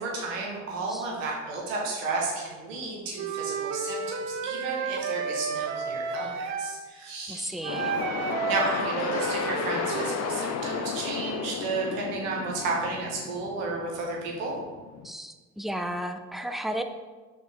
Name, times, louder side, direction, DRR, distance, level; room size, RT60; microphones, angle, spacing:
voice 1, 0.0-7.6 8.4-14.5, right 3 dB, 75° right, -2 dB, 1.5 m, -32 dB
Wind instrument woodwind instrument, 3.1-6.8 7.6-10.2, right 5 dB, 45° right, 0.6 m, -31 dB
voice 2, 7.3-8.0 15.0-16.8, equal, ahead, 7 dB, 0.4 m, -34 dB
sound 1, 7.7-15.1, left 7 dB, 45° left, 0.6 m, -34 dB
5.7 x 4.6 x 3.6 m, 1.3 s
hypercardioid pair, 60°, 39 cm